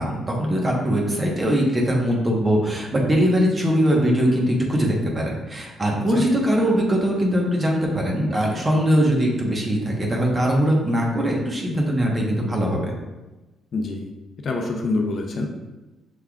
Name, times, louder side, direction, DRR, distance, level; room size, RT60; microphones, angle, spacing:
voice 1, 0.0-12.9, equal, 30° right, -1 dB, 1.1 m, -21 dB
voice 2, 13.7-14.1 14.4-15.5, left 3 dB, 55° left, 2 dB, 0.6 m, -25 dB
6.1 x 3.3 x 2.4 m, 1.1 s
cardioid pair, 90°, 0 cm